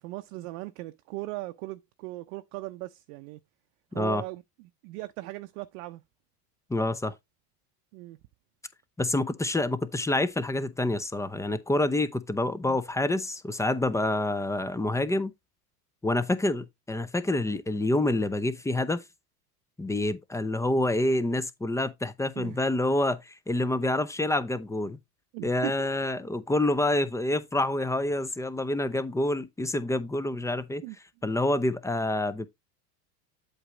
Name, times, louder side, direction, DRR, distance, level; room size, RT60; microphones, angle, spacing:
voice 1, 0.0-3.4 3.9-6.0 7.9-8.2 12.7-12.8 22.4-22.6 25.3-25.9 30.8-31.0, right 19 dB, 65° right, 0.7 m, -38 dB
voice 2, 6.7-7.1 9.0-15.3 16.0-19.0 19.8-25.0 25.4-30.8 31.2-32.5, left 1 dB, 5° left, 0.5 m, -27 dB
8.0 x 3.2 x 5.0 m
supercardioid pair, 105°, 48 cm